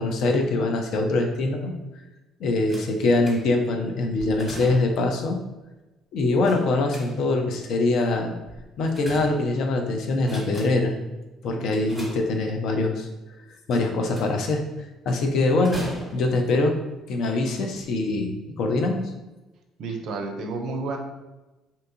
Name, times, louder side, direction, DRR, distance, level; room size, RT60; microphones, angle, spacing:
voice 1, 0.0-1.7 2.4-5.4 6.1-8.4 8.8-11.0 11.4-13.1 13.7-14.6 15.1-15.8 16.1-16.8 17.1-19.1, left 2 dB, 60° left, 3 dB, 0.4 m, -23 dB
sound 1, 2.7-3.7 4.2-5.1 6.4-7.5 8.5-9.8 10.2-11.0 11.7-12.7 13.7-14.5 15.6-16.5 17.3-17.4 17.8-17.9, equal, 5° right, 1.1 m, -40 dB
voice 2, 11.5-12.0 19.8-21.0, right 3 dB, 60° right, 4 dB, 0.4 m, -32 dB
2.7 x 2.3 x 2.6 m, 1.1 s
hypercardioid pair, 55°, 0 cm